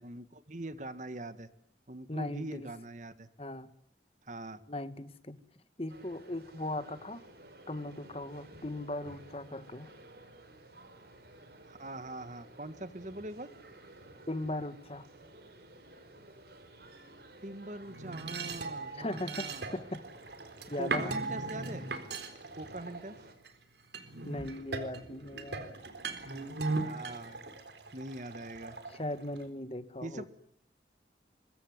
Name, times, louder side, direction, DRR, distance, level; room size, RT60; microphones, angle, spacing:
voice 1, 0.0-1.5 1.9-3.3 4.2-4.6 11.7-13.5 17.4-19.7 20.8-21.9 22.6-23.2 26.8-27.5 27.9-28.8 30.0-30.3, right 1 dB, 45° right, 12 dB, 1.7 m, -42 dB
voice 2, 2.1-2.7 3.4-3.7 4.7-5.4 5.8-7.3 7.7-9.9 14.3-15.1 18.9-20.0 20.7-21.1 24.2-25.6 28.9-30.3, left 1 dB, 35° left, 12 dB, 1.6 m, -38 dB
sound 1, 5.9-23.3, right 1 dB, 60° right, 5.1 m, -54 dB
sound 2, 17.8-23.5 23.9-29.4, right 3 dB, 75° right, 4.0 m, -39 dB
25.0 x 22.0 x 9.6 m, 0.66 s
head